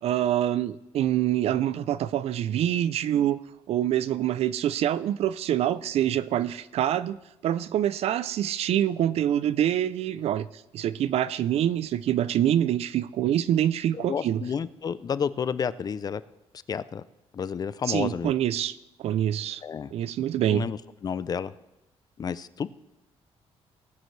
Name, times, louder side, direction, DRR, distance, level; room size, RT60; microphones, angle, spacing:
voice 1, 0.0-3.4 3.7-10.5 10.7-14.4 17.9-19.6 19.9-20.6, right 11 dB, 70° right, 17 dB, 0.4 m, -25 dB
voice 2, 13.9-16.2 16.7-17.0 17.3-18.3 19.6-19.9 20.4-21.5 22.2-22.7, left 7 dB, 35° left, 16 dB, 0.4 m, -31 dB
18.5 x 9.4 x 3.2 m, 0.95 s
cardioid pair, 125°, 11 cm